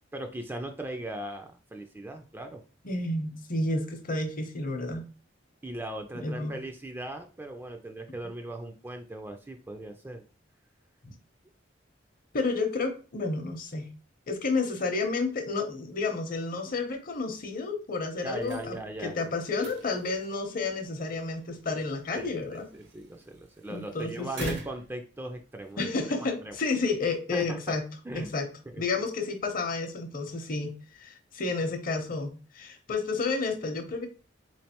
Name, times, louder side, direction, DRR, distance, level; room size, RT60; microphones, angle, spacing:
voice 1, 0.1-2.6 5.6-10.2 18.2-19.3 22.1-25.9 26.2-26.6 27.3-27.8 28.0-28.3 28.7-28.8, right 1 dB, 10° right, 5 dB, 0.3 m, -39 dB
voice 2, 2.8-5.0 6.2-6.5 11.0-11.1 12.3-13.9 14.3-22.7 23.7-24.6 25.8-27.9 28.1-28.5 28.8-34.1, left 3 dB, 50° left, 5 dB, 0.7 m, -31 dB
sound 1, 18.3-25.8, right 3 dB, 70° right, 0.8 m, -47 dB
3.7 x 3.1 x 2.9 m, 0.36 s
head